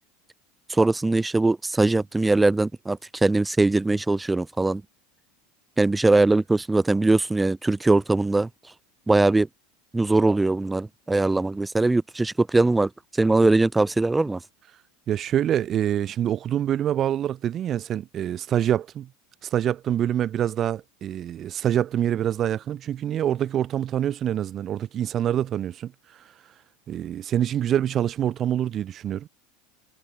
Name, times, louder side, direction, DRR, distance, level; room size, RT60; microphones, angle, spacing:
voice 1, 0.7-4.8 5.8-8.5 9.1-9.5 9.9-12.9 13.2-14.4, right 2 dB, 10° right, 0.6 m, -21 dB
voice 2, 15.1-19.1 19.4-26.3 26.9-29.3, right 10 dB, 35° right, 0.3 m, -26 dB
figure-of-eight pair, 80°, 0 cm